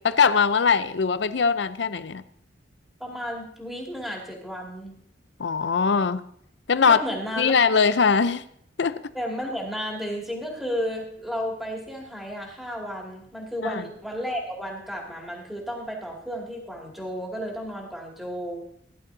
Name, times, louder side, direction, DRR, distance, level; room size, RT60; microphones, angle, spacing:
voice 1, 0.0-2.2 5.4-6.2 6.7-7.0 7.4-8.4 8.8-9.0 13.6-13.9, left 5 dB, 75° left, 13 dB, 0.6 m, -21 dB
voice 2, 3.0-5.0 6.8-7.5 9.1-18.6, equal, ahead, -2 dB, 2.4 m, -33 dB
16.5 x 11.0 x 2.7 m, 0.67 s
head